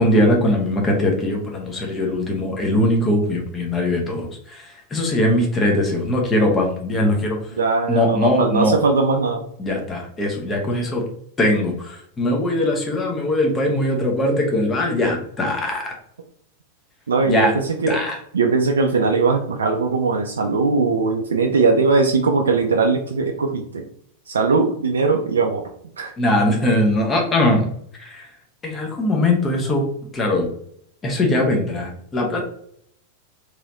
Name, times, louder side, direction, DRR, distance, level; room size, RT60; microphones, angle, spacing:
voice 1, 0.0-7.5 7.9-8.8 9.6-11.0 11.4-16.0 17.3-17.5 17.9-18.2 26.2-27.7 28.0-28.3 28.6-29.9 30.1-30.5 31.0-32.4, left 1 dB, 20° left, 1 dB, 0.9 m, -21 dB
voice 2, 7.6-9.4 17.1-18.0 18.3-23.9 24.3-25.6 26.0-26.1, right 4 dB, 70° right, 3 dB, 0.4 m, -20 dB
3.1 x 3.1 x 2.5 m, 0.66 s
figure-of-eight pair, 90°, 0 cm